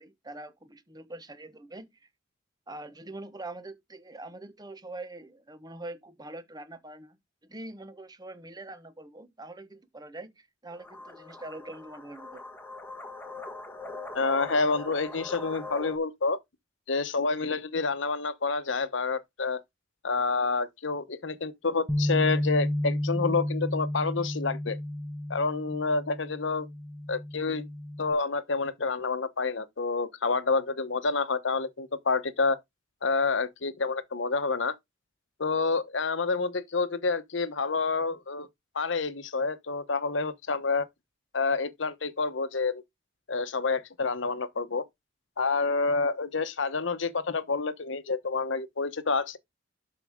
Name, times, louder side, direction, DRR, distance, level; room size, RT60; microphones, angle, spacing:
voice 1, 0.0-2.1 2.7-7.2 7.5-12.4, right 2 dB, 20° right, 1.1 m, -44 dB
sound 1, 10.7-16.0, left 3 dB, 10° left, 1.5 m, -41 dB
voice 2, 14.1-16.4 16.9-19.6 20.0-24.8 25.3-26.7 27.1-27.7 28.0-32.6 33.0-34.7 35.4-38.5 38.7-40.9 41.3-42.8 43.3-44.8 45.4-49.4, left 4 dB, 70° left, 1.0 m, -28 dB
Bass guitar, 21.9-28.1, left 1 dB, 5° right, 0.9 m, -31 dB
12.0 x 4.9 x 3.6 m
head